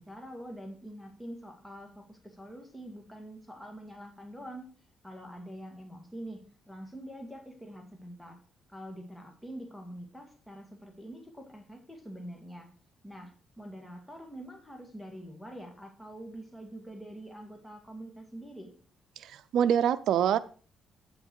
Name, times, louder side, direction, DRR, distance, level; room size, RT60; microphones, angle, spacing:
voice 1, 0.0-4.7 5.0-8.4 8.7-12.7 13.0-18.7, equal, 5° left, 3 dB, 2.0 m, -45 dB
voice 2, 19.2-20.4, right 9 dB, 75° right, 11 dB, 0.5 m, -25 dB
8.6 x 8.0 x 4.6 m, 0.40 s
cardioid pair, 90°, 0 cm